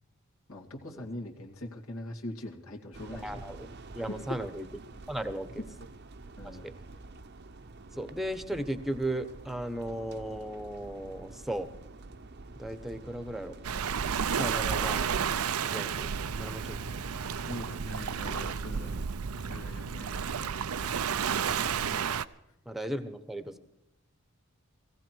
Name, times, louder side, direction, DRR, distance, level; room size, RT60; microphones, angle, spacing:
voice 1, 0.5-3.4 4.1-4.4 6.4-6.7 17.5-21.1, left 1 dB, 75° left, 0 dB, 2.4 m, -42 dB
sound 1, 2.9-19.1, right 2 dB, 50° right, 0.8 m, -47 dB
voice 2, 3.2-3.7 3.9-4.6 5.1-5.6 6.6-6.7 8.0-11.7 12.6-13.5 14.4-15.3 15.6-16.1 16.4-16.8 21.7-22.0 22.7-23.6, right 1 dB, ahead, 10 dB, 1.0 m, -36 dB
Waves surf, 13.6-22.3, right 7 dB, 85° right, 0.6 m, -32 dB
18.5 x 16.5 x 4.6 m, 0.84 s
head